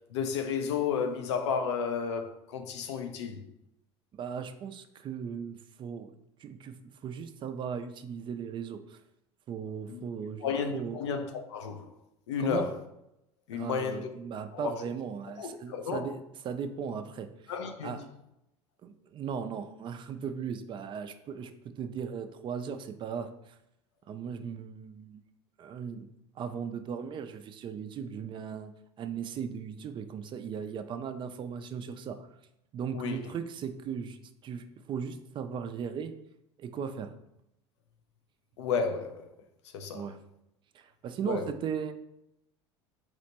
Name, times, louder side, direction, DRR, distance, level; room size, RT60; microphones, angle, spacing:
voice 1, 0.1-3.4 9.9-10.0 10.4-11.9 12.3-12.7 13.5-14.1 14.5-14.8 15.4-16.1 17.5-18.0 32.9-33.3 38.6-39.3 39.7-40.1 41.3-41.5, left 6 dB, 80° left, 0.5 m, -32 dB
voice 2, 4.1-6.1 6.4-6.8 7.0-9.0 9.5-10.5 10.7-11.0 12.4-12.7 13.5-17.5 17.8-18.0 18.8-21.5 21.8-23.6 24.1-25.2 25.6-26.1 26.4-32.2 32.7-36.1 36.6-37.1 39.9-40.2 40.7-41.9, right 7 dB, 35° right, 0.3 m, -37 dB
4.2 x 2.1 x 2.9 m
hypercardioid pair, 85°, 15 cm